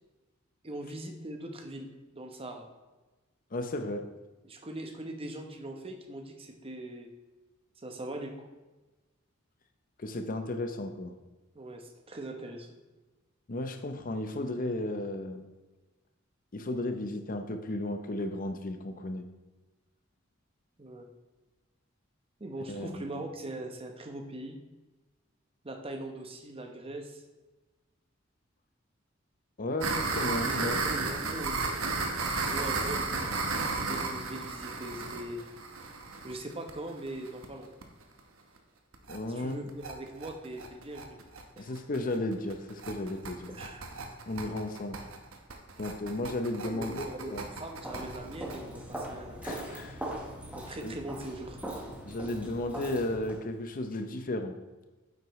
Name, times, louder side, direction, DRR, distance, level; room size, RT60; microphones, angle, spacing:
voice 1, 0.6-2.7 4.4-7.1 7.8-8.5 11.5-12.7 20.8-21.1 22.4-24.6 25.6-27.2 30.3-31.6 32.4-33.4 33.8-35.4 36.2-37.7 39.3-41.2 41.6-41.8 43.5-43.9 46.6-49.4 50.5-51.6, right 1 dB, 30° right, 4 dB, 0.9 m, -41 dB
voice 2, 3.5-4.1 10.0-11.1 13.5-15.5 16.5-19.3 22.7-23.0 29.6-30.8 39.1-39.7 41.6-43.6 44.3-45.0 45.8-47.5 49.4-50.1 50.8-50.9 52.1-54.6, left 1 dB, 40° left, 7 dB, 0.7 m, -34 dB
sound 1, 29.8-37.5 37.8-37.9 38.2-38.3 38.6-38.7 38.9-39.2 39.5-48.6, right 3 dB, 80° right, 1.0 m, -34 dB
Walk footsteps, 47.8-53.4, right 1 dB, 5° right, 1.2 m, -40 dB
9.4 x 8.0 x 3.1 m, 1.2 s
head